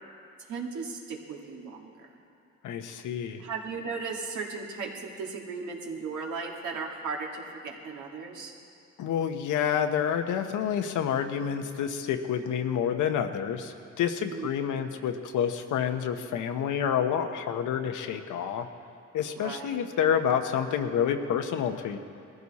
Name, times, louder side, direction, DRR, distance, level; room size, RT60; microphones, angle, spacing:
voice 1, 0.5-2.1 3.4-8.5 14.3-14.7 19.3-19.8, right 4 dB, 75° right, -1 dB, 2.3 m, -36 dB
voice 2, 2.6-3.4 9.0-18.7 19.1-22.0, left 8 dB, 80° left, 7 dB, 1.0 m, -28 dB
20.5 x 14.5 x 4.2 m, 2.5 s
cardioid pair, 90°, 30 cm